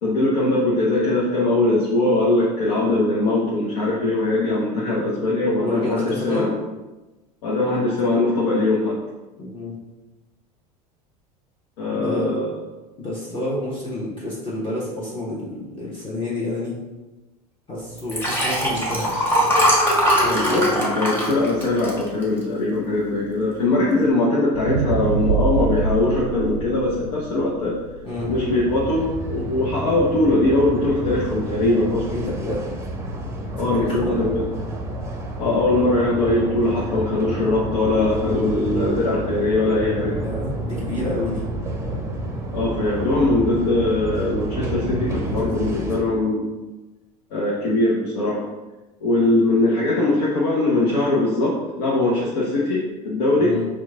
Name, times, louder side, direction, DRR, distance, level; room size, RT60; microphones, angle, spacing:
voice 1, 0.0-6.5 7.4-9.0 11.8-12.5 20.3-27.8 28.3-32.1 33.5-34.5 35.4-40.2 42.5-46.5 47.3-48.4 49.0-53.6, left 2 dB, 70° left, -5 dB, 0.9 m, -21 dB
voice 2, 5.5-6.5 9.4-9.8 11.9-12.5 13.0-16.8 17.7-19.3 20.2-20.8 28.0-28.3 32.1-32.7 33.6-34.2 40.0-41.4 45.2-45.9 53.4-53.7, left 1 dB, 25° left, -6 dB, 1.2 m, -29 dB
Liquid, 18.0-22.6 23.1-23.4 23.6-23.7, equal, 10° left, 1.4 m, -21 dB
sound 1, 24.5-28.8 29.3-29.4, right 5 dB, 85° right, 0.5 m, -25 dB
sound 2, 28.2-46.0, right 1 dB, 15° right, 0.7 m, -30 dB
4.5 x 2.4 x 3.6 m, 1.1 s
hypercardioid pair, 85°, 20 cm